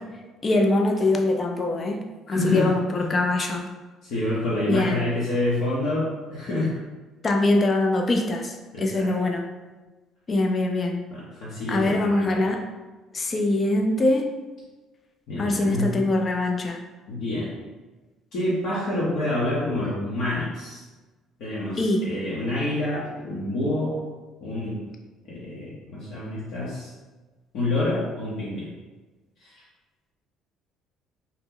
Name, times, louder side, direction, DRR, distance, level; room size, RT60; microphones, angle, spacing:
voice 1, 0.4-2.0 2.3-3.6 4.6-5.0 7.2-9.4 10.3-11.0 11.7-12.6 13.1-14.3 15.4-16.8 21.8-22.0, left 2 dB, 25° left, 2 dB, 0.4 m, -23 dB
voice 2, 2.3-2.7 3.0-3.1 4.0-6.8 8.7-9.1 11.1-12.5 15.3-16.0 17.1-17.5 18.3-20.8 21.4-24.0 24.4-24.8 25.3-26.9 27.5-28.7 29.4-29.6, left 1 dB, 60° left, -8 dB, 0.8 m, -27 dB
2.8 x 2.1 x 3.7 m, 1.2 s
cardioid pair, 150°, 0 cm